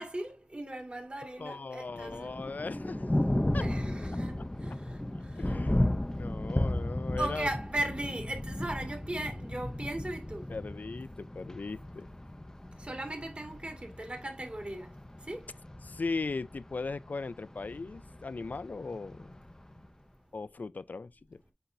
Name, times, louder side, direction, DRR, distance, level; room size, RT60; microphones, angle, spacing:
voice 1, 0.0-2.3 3.6-5.0 7.2-10.5 12.8-14.9 15.3-15.4, right 1 dB, 45° right, 2.1 m, -37 dB
voice 2, 1.4-3.1 3.5-3.7 4.4-4.5 5.4-7.5 10.5-12.1 15.8-19.4 20.3-21.4, left 3 dB, 75° left, 0.3 m, -38 dB
Thunder, 1.9-19.9, left 1 dB, 20° left, 0.6 m, -35 dB
8.0 x 4.5 x 2.6 m
wide cardioid pair, 45°, 3 cm